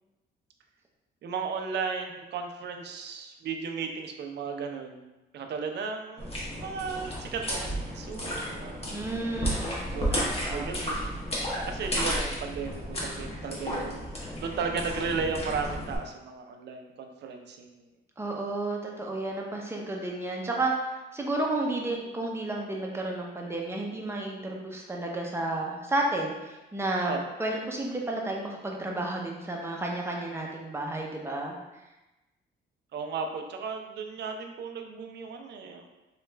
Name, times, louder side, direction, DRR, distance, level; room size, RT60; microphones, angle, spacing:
voice 1, 1.2-5.1 5.3-8.9 9.8-11.0 11.6-14.1 14.4-17.9 27.0-27.2 32.9-36.0, right 5 dB, 60° right, 4 dB, 0.5 m, -35 dB
sound 1, 6.2-16.0, equal, 30° left, 1.1 m, -33 dB
voice 2, 8.9-10.7 18.2-20.7 21.1-31.6, right 2 dB, 10° right, -1 dB, 0.6 m, -32 dB
3.2 x 2.3 x 3.2 m, 1.0 s
cardioid pair, 90°, 20 cm